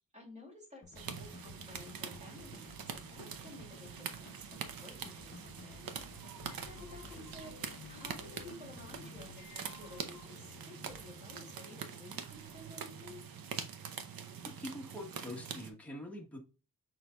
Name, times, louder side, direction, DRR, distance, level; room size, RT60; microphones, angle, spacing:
voice 1, 0.1-6.2 6.6-7.6 7.9-13.2, left 1 dB, 20° right, -2 dB, 2.4 m, -53 dB
sound 1, 0.8-9.3, left 4 dB, 30° left, 0.7 m, -55 dB
sound 2, 1.0-15.7, right 7 dB, 70° right, 0.7 m, -45 dB
sound 3, 6.4-13.3, left 8 dB, 70° left, 0.6 m, -56 dB
voice 2, 14.6-16.4, left 1 dB, 5° left, 0 dB, 1.2 m, -44 dB
6.1 x 3.9 x 2.2 m, 0.33 s
wide cardioid pair, 135°, 36 cm